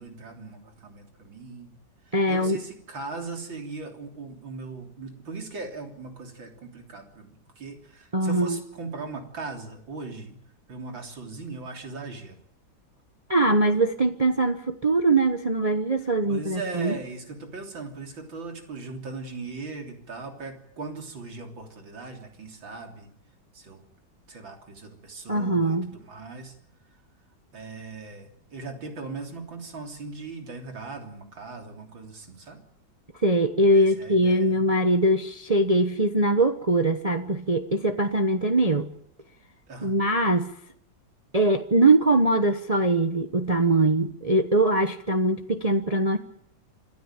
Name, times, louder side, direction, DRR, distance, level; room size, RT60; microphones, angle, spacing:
voice 1, 0.0-1.7 2.1-10.4 10.7-12.4 16.3-23.1 23.5-23.9 24.3-26.5 27.5-32.6 33.7-34.6 39.7-40.0, right 3 dB, 85° right, 4 dB, 4.1 m, -39 dB
voice 2, 2.1-2.6 8.1-8.6 13.3-17.0 25.3-25.9 33.2-38.9 39.8-40.5 41.3-46.2, right 2 dB, 25° right, 7 dB, 0.9 m, -22 dB
26.5 x 13.5 x 9.1 m, 0.69 s
omnidirectional pair, 2.0 m